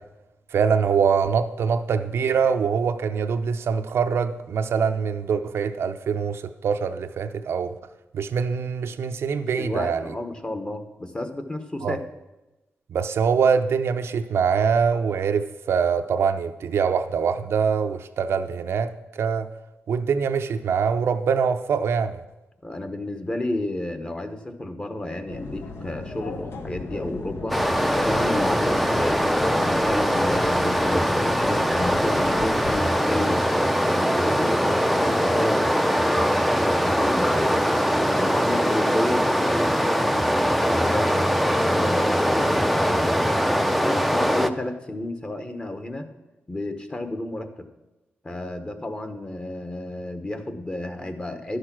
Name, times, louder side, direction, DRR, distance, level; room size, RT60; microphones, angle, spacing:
voice 1, 0.5-7.7 8.1-10.0 11.8-12.0 12.9-19.5 19.9-22.2, right 6 dB, 80° right, 0.6 m, -24 dB
voice 2, 9.6-12.0 22.6-27.6 27.9-33.4 33.8-35.7 36.7-37.6 38.1-46.1 46.5-47.7 48.2-51.6, left 1 dB, 25° left, 1.1 m, -31 dB
sound 1, 25.3-32.7, left 3 dB, 75° left, 1.1 m, -37 dB
Stream, 27.5-44.5, equal, ahead, 0.5 m, -22 dB
11.0 x 6.5 x 6.0 m
wide cardioid pair, 100°, 4 cm